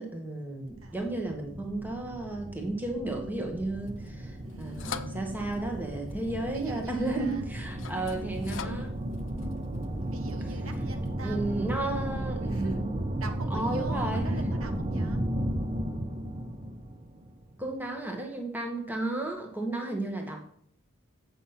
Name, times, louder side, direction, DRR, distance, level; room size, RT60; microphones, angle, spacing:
voice 1, 0.0-8.9 11.2-13.0 13.5-14.3 17.6-20.5, right 2 dB, 10° right, 2 dB, 1.3 m, -33 dB
sound 1, 0.6-17.7, right 1 dB, 25° right, 0.7 m, -34 dB
voice 2, 0.8-1.2 4.4-5.7 6.5-7.5 10.0-11.7 12.4-12.8 13.2-15.2, right 2 dB, 80° right, 6 dB, 1.3 m, -44 dB
sound 2, 3.8-11.1, left 6 dB, 60° left, 0.6 m, -46 dB
8.3 x 5.7 x 5.7 m, 0.64 s
head